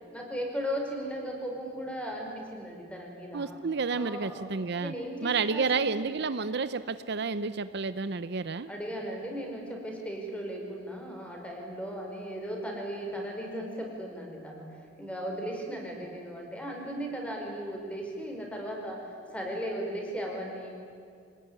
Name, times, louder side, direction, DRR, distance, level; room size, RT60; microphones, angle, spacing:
voice 1, 0.1-3.6 3.9-4.5 4.8-6.1 8.7-20.7, equal, 5° left, 0 dB, 5.1 m, -37 dB
voice 2, 3.3-4.9 5.2-8.7, right 4 dB, 60° right, 12 dB, 0.7 m, -30 dB
25.5 x 19.5 x 10.0 m, 2.3 s
head